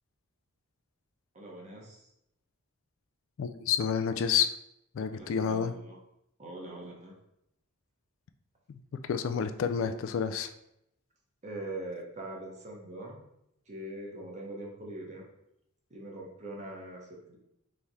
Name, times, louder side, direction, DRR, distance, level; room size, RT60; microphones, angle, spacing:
voice 1, 1.3-2.1 5.1-6.0 6.4-7.1 11.4-13.2 13.7-15.2 15.9-17.4, right 1 dB, 30° right, -1 dB, 1.0 m, -42 dB
voice 2, 3.4-4.5 4.9-5.7 9.0-10.5, left 7 dB, 60° left, 9 dB, 0.3 m, -29 dB
3.5 x 3.2 x 4.1 m, 0.80 s
head